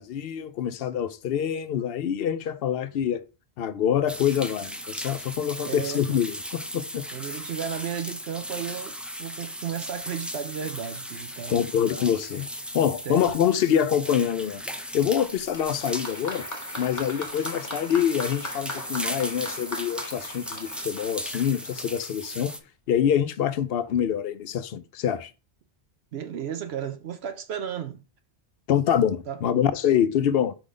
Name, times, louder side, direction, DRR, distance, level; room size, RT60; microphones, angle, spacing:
voice 1, 0.0-3.2 3.6-7.0 11.5-12.5 12.7-16.5 16.8-22.5 22.9-25.3 28.7-30.5, left 9 dB, 65° left, 0.8 m, -25 dB
sound 1, 4.1-22.6, equal, ahead, 0.4 m, -37 dB
voice 2, 5.6-6.2 7.1-11.7 13.0-13.2 26.1-28.0 29.3-29.4, right 8 dB, 70° right, 0.9 m, -34 dB
Applause, 15.5-22.0 22.9-23.0, left 1 dB, 15° left, 1.2 m, -39 dB
4.9 x 3.8 x 5.0 m
omnidirectional pair, 1.1 m